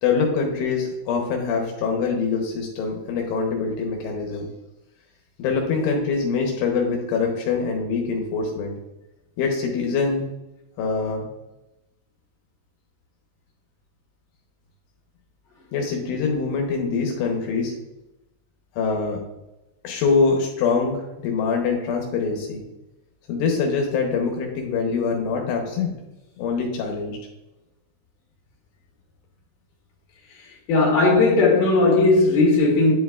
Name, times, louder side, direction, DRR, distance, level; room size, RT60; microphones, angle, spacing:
voice 1, 0.0-4.5 5.4-8.7 9.4-10.3 10.8-11.3 15.7-17.7 18.7-19.2 19.8-22.6 23.3-25.9 26.4-27.2, left 5 dB, 80° left, 1 dB, 2.9 m, -24 dB
voice 2, 30.7-32.9, left 3 dB, 50° left, -4 dB, 2.9 m, -17 dB
10.0 x 4.5 x 2.3 m, 0.97 s
omnidirectional pair, 4.8 m